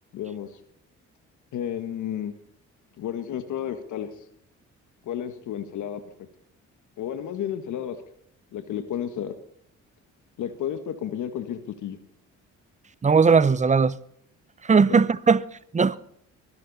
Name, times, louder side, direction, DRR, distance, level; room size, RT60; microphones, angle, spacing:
voice 1, 0.1-0.5 1.5-2.3 3.0-4.1 5.0-6.0 7.0-8.0 8.5-9.3 10.4-12.0 14.9-15.0, left 9 dB, 75° left, 1.5 m, -32 dB
voice 2, 13.0-14.0 14.6-15.4 15.7-16.0, right 5 dB, 25° right, 0.7 m, -18 dB
23.0 x 12.5 x 4.1 m
cardioid pair, 90°, 30 cm